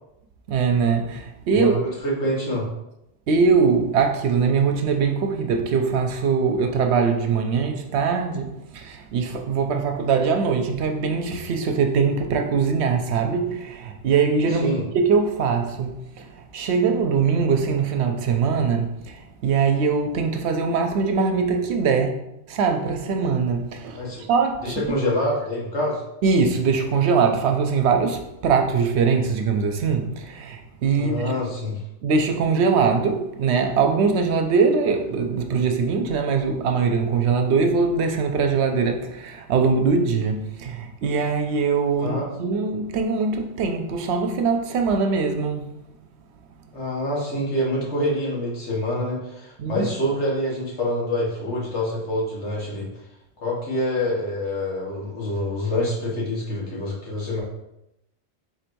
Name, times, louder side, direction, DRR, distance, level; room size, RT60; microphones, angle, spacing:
voice 1, 0.5-1.8 3.3-16.3 16.5-22.1 22.5-24.0 24.3-24.8 26.2-31.1 32.0-45.6 49.6-49.9, right 5 dB, 75° right, 0.9 m, -22 dB
voice 2, 1.5-2.7 14.5-14.8 23.9-24.2 24.6-26.0 30.9-31.8 42.0-42.2 46.7-53.0 53.4-57.4, left 1 dB, 90° left, 1.6 m, -26 dB
4.2 x 2.6 x 4.5 m
omnidirectional pair, 1.1 m